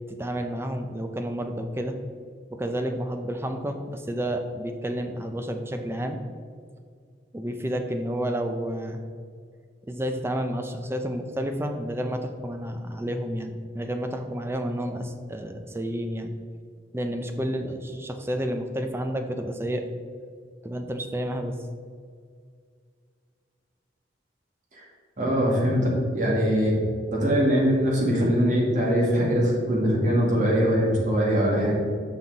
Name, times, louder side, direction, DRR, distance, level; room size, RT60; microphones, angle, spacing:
voice 1, 0.1-2.0 2.5-6.2 7.3-9.0 9.9-16.3 16.9-19.8 20.6-21.6, equal, 15° right, 6 dB, 0.5 m, -30 dB
voice 2, 25.2-25.9 26.1-26.7 27.1-31.8, equal, 45° right, -3 dB, 1.8 m, -22 dB
6.1 x 5.6 x 4.0 m, 2.1 s
head